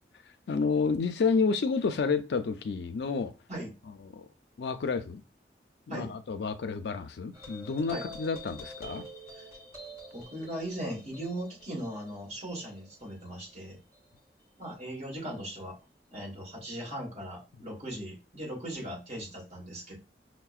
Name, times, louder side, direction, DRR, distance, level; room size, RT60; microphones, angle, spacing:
voice 1, 0.5-3.3 4.1-4.3 4.6-5.2 5.9-9.1, left 4 dB, 70° left, 0.4 m, -30 dB
sound 1, 7.3-14.2, equal, 20° right, 1.4 m, -47 dB
voice 2, 10.1-13.8 14.6-15.8 16.1-20.0, right 1 dB, 40° right, 1.4 m, -38 dB
5.5 x 2.1 x 2.4 m
head